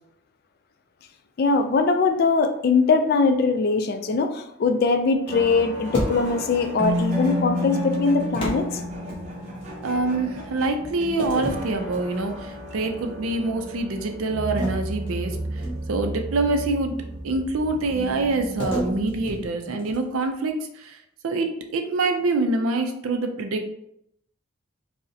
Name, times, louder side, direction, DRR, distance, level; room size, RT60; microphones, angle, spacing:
voice 1, 1.4-8.7, left 4 dB, 50° left, 0.3 m, -21 dB
sound 1, 5.3-19.5, right 1 dB, 35° right, 0.7 m, -35 dB
sound 2, 5.9-6.6 8.3-9.7 11.2-12.5 13.0-13.2 14.6-16.1 18.6-20.2, equal, 25° left, 0.9 m, -32 dB
Keyboard (musical), 6.8-10.0, left 2 dB, ahead, 1.0 m, -29 dB
voice 2, 9.8-15.6 15.9-17.0 17.2-21.0 21.2-23.7, right 2 dB, 85° right, 0.4 m, -25 dB
4.8 x 2.1 x 2.7 m
head